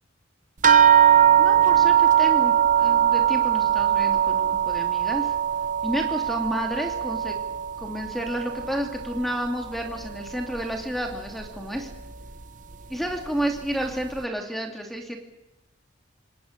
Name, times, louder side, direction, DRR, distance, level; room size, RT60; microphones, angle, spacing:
sound 1, 0.6-9.5 9.8-10.7 11.4-11.5 11.9-12.1, right 10 dB, 40° right, 1.1 m, -21 dB
voice 1, 1.4-5.3 5.8-7.4 7.8-11.9 12.9-15.2, equal, ahead, 3 dB, 2.6 m, -31 dB
27.5 x 20.5 x 6.7 m, 0.98 s
head